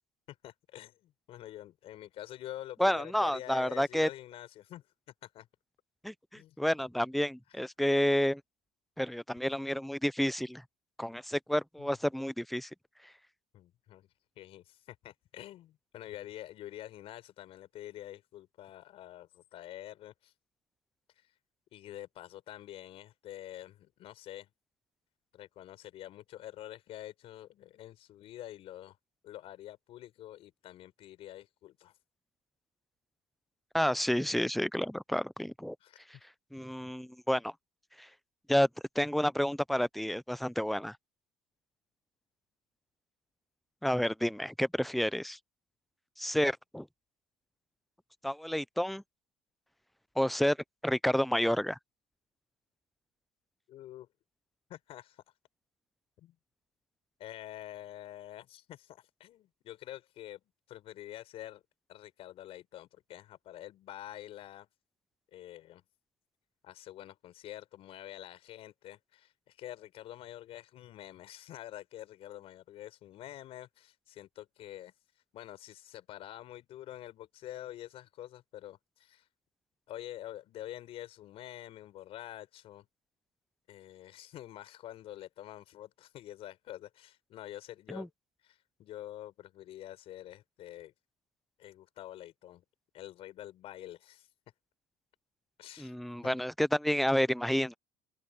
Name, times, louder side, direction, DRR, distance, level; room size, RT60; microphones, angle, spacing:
voice 1, 0.3-4.8 5.2-5.5 6.3-6.6 7.5-7.7 11.8-11.9 13.5-14.1 14.4-20.3 21.1-21.4 21.7-24.5 25.3-29.0 29.2-32.0 35.8-36.0 53.7-54.1 54.7-55.2 56.2-56.3 57.2-60.4 60.7-61.6 61.9-64.7 65.3-65.8 66.6-79.3 79.9-82.9 83.7-88.1 88.4-90.9 91.6-92.6 92.9-94.3 95.6-96.0 96.2-96.3, left 13 dB, 60° left, 6.2 m, -47 dB
voice 2, 2.8-4.1 6.0-8.4 9.0-10.6 11.0-12.7 33.7-35.7 36.5-37.5 38.5-38.7 39.0-41.0 43.8-45.4 46.2-46.9 48.2-49.0 50.2-50.6 50.8-51.8 87.9-88.1 95.8-97.7, equal, ahead, 0.6 m, -30 dB
open air
supercardioid pair, 105°, 11 cm